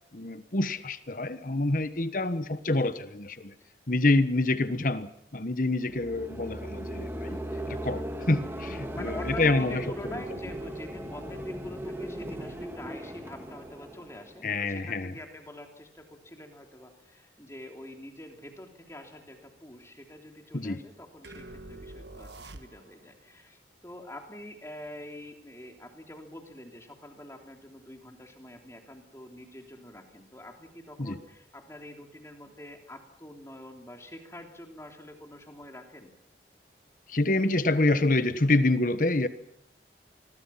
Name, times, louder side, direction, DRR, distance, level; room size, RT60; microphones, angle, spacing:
voice 1, 0.1-3.5 3.9-7.4 7.7-9.8 10.1-10.2 14.4-15.1 20.5-20.8 31.0-31.2 37.1-39.3, left 2 dB, 50° left, 1.3 m, -27 dB
sound 1, 5.8-14.8, right 1 dB, 15° right, 2.1 m, -38 dB
voice 2, 8.9-36.1, left 1 dB, 15° left, 3.2 m, -45 dB
sound 2, 21.2-23.1, right 2 dB, 80° right, 1.4 m, -45 dB
27.0 x 21.5 x 5.8 m
head